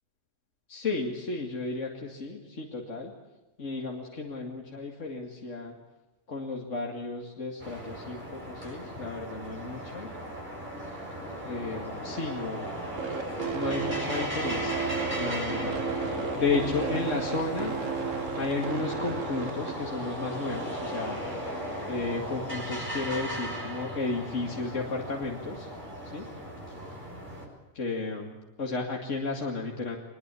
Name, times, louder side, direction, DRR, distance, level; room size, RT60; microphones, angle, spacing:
voice 1, 0.7-3.1 3.6-5.7 6.3-10.1 10.9-11.0 11.4-12.7 13.1-13.3 13.5-14.8 15.1-17.8 18.3-21.3 21.9-25.7 26.1-26.3 26.7-26.8 27.7-30.0, left 3 dB, 65° left, 0 dB, 2.7 m, -33 dB
sound 1, 7.6-27.5, equal, 35° right, 6.9 m, -36 dB
sound 2, 13.0-19.7, right 6 dB, 70° right, 1.9 m, -33 dB
24.0 x 21.0 x 8.4 m, 1.1 s
omnidirectional pair, 1.4 m